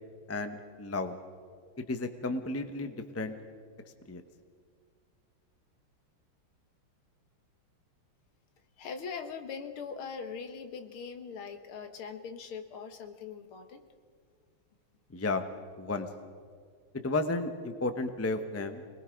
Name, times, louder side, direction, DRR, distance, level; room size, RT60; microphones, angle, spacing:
voice 1, 0.3-1.2 1.9-3.3 4.1-4.2 15.1-15.4 15.8-16.1 17.0-18.8, left 2 dB, 20° left, 7 dB, 0.4 m, -33 dB
voice 2, 8.8-13.8, left 6 dB, 80° left, 8 dB, 2.1 m, -41 dB
25.5 x 20.0 x 5.2 m, 2.1 s
omnidirectional pair, 2.3 m